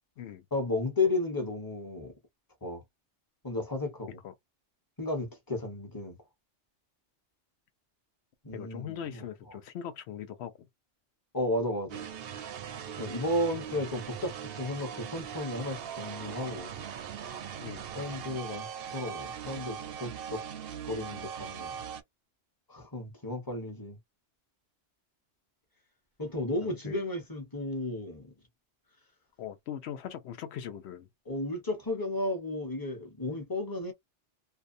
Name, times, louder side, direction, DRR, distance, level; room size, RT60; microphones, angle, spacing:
voice 1, 0.5-2.1 2.6-2.8 3.4-4.2 5.0-6.2 8.4-9.6 11.3-12.2 12.9-16.7 17.9-20.4 20.8-21.8 22.7-24.0 26.2-28.3 31.3-33.9, left 2 dB, 20° left, 0.9 m, -33 dB
voice 2, 8.5-10.5 17.6-17.9 26.9-27.0 29.4-31.1, left 9 dB, 70° left, 0.8 m, -40 dB
sound 1, 11.9-22.0, right 8 dB, 65° right, 0.7 m, -40 dB
2.6 x 2.2 x 2.5 m
omnidirectional pair, 1.2 m